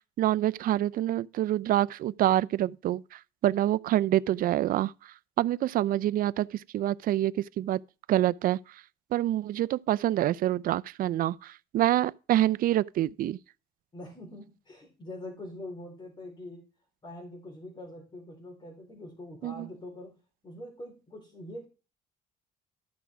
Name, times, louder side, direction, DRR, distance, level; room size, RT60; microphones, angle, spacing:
voice 1, 0.2-4.9 5.4-6.5 6.7-7.8 8.1-8.6 9.1-13.4 19.4-19.7, right 13 dB, 60° right, 0.5 m, -26 dB
voice 2, 13.9-16.6 17.0-20.2 20.4-21.6, left 1 dB, 25° left, 4.1 m, -44 dB
12.5 x 6.1 x 4.6 m
cardioid pair, 110°, 17 cm